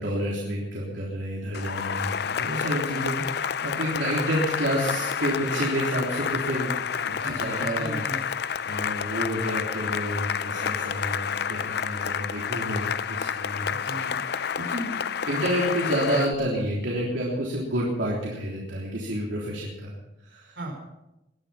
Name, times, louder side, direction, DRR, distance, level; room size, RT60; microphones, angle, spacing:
voice 1, 0.0-8.1 8.4-13.8 14.2-15.0 15.2-20.6, equal, 85° right, -5 dB, 3.5 m, -29 dB
Cheering / Applause, 1.5-16.4, left 7 dB, 60° left, 0.5 m, -29 dB
voice 2, 7.2-8.2 13.7-14.2 20.5-20.7, right 1 dB, 70° right, 1 dB, 5.1 m, -37 dB
21.0 x 11.0 x 5.8 m, 0.92 s
head